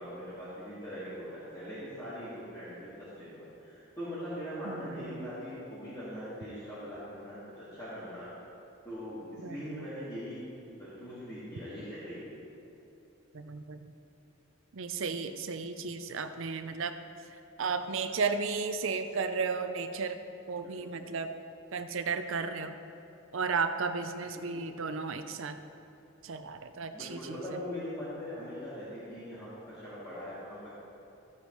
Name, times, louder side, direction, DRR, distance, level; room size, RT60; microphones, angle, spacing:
voice 1, 0.0-8.3 8.8-10.4 10.8-12.3 20.6-21.1 24.4-24.6 26.9-30.6, equal, 15° left, -13 dB, 2.1 m, -41 dB
voice 2, 4.6-5.3 9.4-9.8 13.3-13.9 14.7-16.9 17.6-20.2 20.5-21.3 21.7-22.7 23.3-25.6 26.2-27.4, right 5 dB, 65° right, 9 dB, 0.6 m, -34 dB
14.0 x 8.4 x 3.2 m, 2.9 s
head